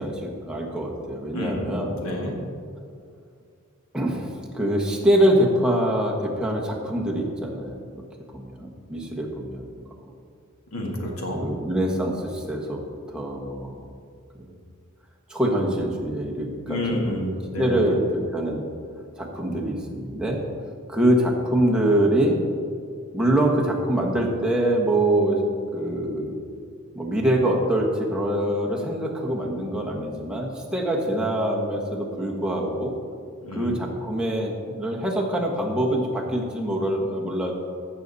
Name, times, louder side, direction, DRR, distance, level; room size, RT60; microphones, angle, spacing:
voice 1, 0.0-2.0 3.9-8.0 8.3-10.1 11.3-12.8 13.1-13.9 14.3-14.6 15.3-17.0 17.6-18.7 19.2-20.4 20.9-22.4 23.1-25.4 25.7-26.4 26.9-32.9 33.5-37.5, right 1 dB, 5° right, -2 dB, 1.3 m, -24 dB
voice 2, 1.3-1.7 2.0-2.3 10.7-11.4 16.7-18.0 33.4-33.8, left 1 dB, 80° left, 0 dB, 1.9 m, -29 dB
15.0 x 6.7 x 4.1 m, 2.3 s
head